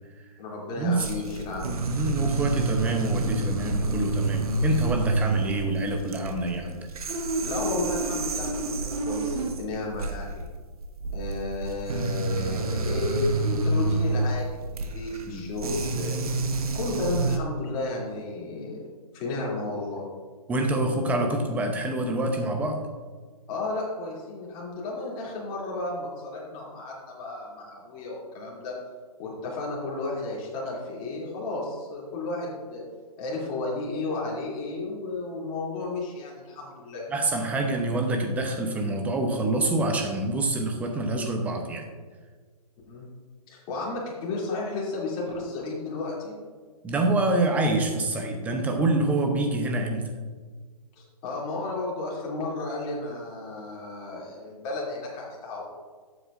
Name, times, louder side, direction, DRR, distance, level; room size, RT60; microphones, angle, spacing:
voice 1, 0.4-1.7 7.4-10.5 11.1-16.1 16.7-18.8 19.1-20.0 23.5-28.8 29.2-32.8 33.2-37.0 42.9-43.1 43.5-46.4 51.0-55.6, left 2 dB, 25° left, -5 dB, 2.7 m, -33 dB
sound 1, 1.0-17.4, right 2 dB, 65° right, 1.2 m, -28 dB
voice 2, 1.9-6.9 15.3-15.5 20.5-22.8 37.1-41.9 46.8-50.0, right 2 dB, 10° right, 3 dB, 0.7 m, -26 dB
12.0 x 8.1 x 2.5 m, 1.5 s
hypercardioid pair, 150°, 20 cm